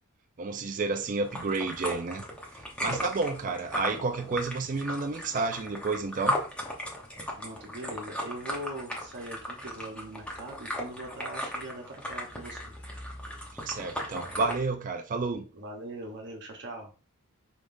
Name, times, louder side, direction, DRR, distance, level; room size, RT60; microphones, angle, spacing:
voice 1, 0.4-2.2 2.6-6.4 13.5-15.5, right 4 dB, 35° right, 0.4 m, -31 dB
sound 1, 1.2-14.6, equal, 5° left, 0.9 m, -36 dB
voice 2, 7.3-12.7 15.5-16.9, right 1 dB, 55° right, 0.9 m, -41 dB
4.8 x 3.6 x 2.5 m
head